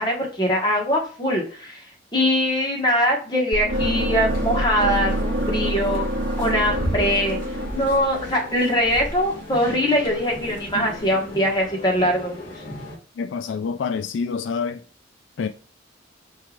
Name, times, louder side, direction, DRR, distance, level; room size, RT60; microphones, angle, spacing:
voice 1, 0.0-1.8 2.1-6.1 6.4-7.4 7.7-12.5, equal, 25° left, 1.2 m, -22 dB
sound 1, 3.5-9.6, right 1 dB, 75° right, 0.7 m, -27 dB
sound 2, 3.7-13.0, equal, 45° left, 1.7 m, -35 dB
voice 2, 13.2-14.8 15.4-15.5, left 5 dB, 75° left, 0.3 m, -27 dB
4.5 x 3.3 x 2.4 m
head